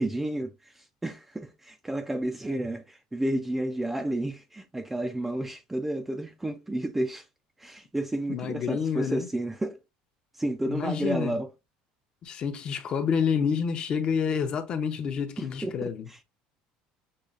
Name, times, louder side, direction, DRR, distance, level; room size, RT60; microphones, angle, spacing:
voice 1, 0.0-7.2 7.6-9.8 10.4-11.5 15.4-16.2, right 1 dB, 5° right, 0.3 m, -31 dB
voice 2, 8.3-9.3 10.7-11.4 12.2-16.1, left 6 dB, 35° left, 0.6 m, -28 dB
6.4 x 2.4 x 2.4 m
cardioid pair, 145°, 3 cm